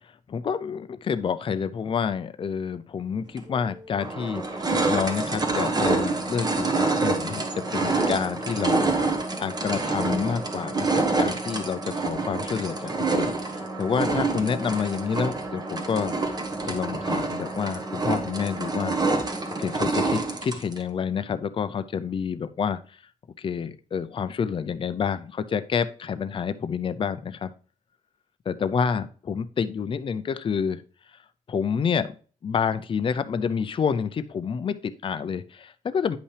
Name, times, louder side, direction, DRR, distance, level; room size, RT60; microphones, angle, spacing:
voice 1, 0.3-7.4 7.7-8.9 9.4-16.2 16.6-19.0 19.6-22.8 23.4-27.5 28.5-30.8 31.5-32.1 32.4-36.2, left 6 dB, 40° left, 11 dB, 0.5 m, -28 dB
sound 1, 3.4-3.5 4.0-20.8, right 3 dB, 30° right, 1.4 m, -27 dB
10.0 x 5.5 x 3.3 m, 0.39 s
wide cardioid pair, 150°, 14 cm